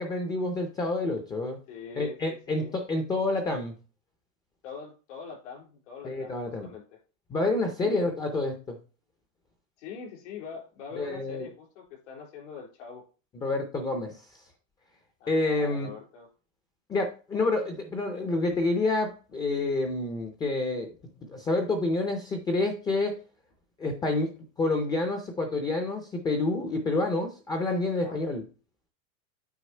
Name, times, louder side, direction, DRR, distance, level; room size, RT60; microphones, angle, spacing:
voice 1, 0.0-1.6 2.0-3.7 6.0-6.7 7.3-8.8 11.0-11.4 13.4-14.2 15.3-15.9 16.9-20.9 21.3-23.1 23.8-24.3 24.6-28.4, left 2 dB, 10° left, 4 dB, 0.4 m, -28 dB
voice 2, 1.7-2.7 4.6-7.0 7.8-8.1 9.8-13.0 15.2-16.3 27.9-28.2, left 6 dB, 75° left, 1 dB, 3.7 m, -43 dB
8.2 x 4.7 x 4.2 m, 0.35 s
supercardioid pair, 170°, 37 cm